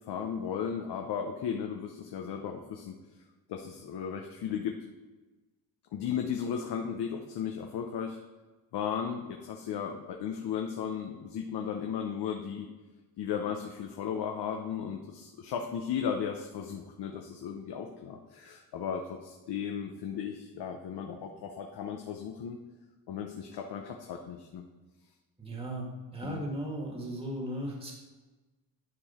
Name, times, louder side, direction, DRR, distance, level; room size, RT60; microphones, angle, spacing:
voice 1, 0.0-2.9 3.5-4.8 5.9-8.2 8.7-12.7 13.2-22.6 23.1-24.6 26.2-26.4, left 7 dB, 70° left, 3 dB, 0.9 m, -35 dB
voice 2, 25.4-27.9, right 1 dB, 15° right, -1 dB, 1.8 m, -36 dB
10.5 x 4.8 x 4.3 m, 1.2 s
cardioid pair, 105°, 41 cm